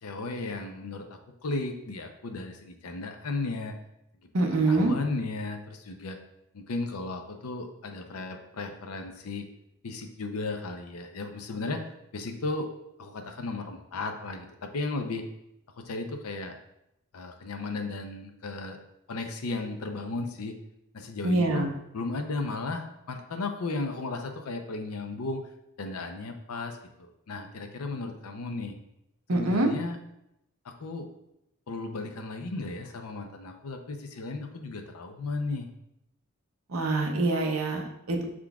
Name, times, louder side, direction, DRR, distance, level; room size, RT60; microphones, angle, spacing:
voice 1, 0.0-3.7 4.5-6.2 6.5-9.5 9.8-12.7 13.0-15.3 15.8-16.6 17.1-18.8 19.1-20.5 20.9-21.7 21.9-25.4 25.8-28.8 29.3-30.0 30.6-31.1 31.7-35.7, left 3 dB, 85° left, 5 dB, 0.6 m, -35 dB
voice 2, 4.3-4.9 21.2-21.7 29.3-29.7 36.7-38.3, right 2 dB, 70° right, 2 dB, 0.7 m, -25 dB
6.0 x 3.7 x 2.3 m, 0.84 s
head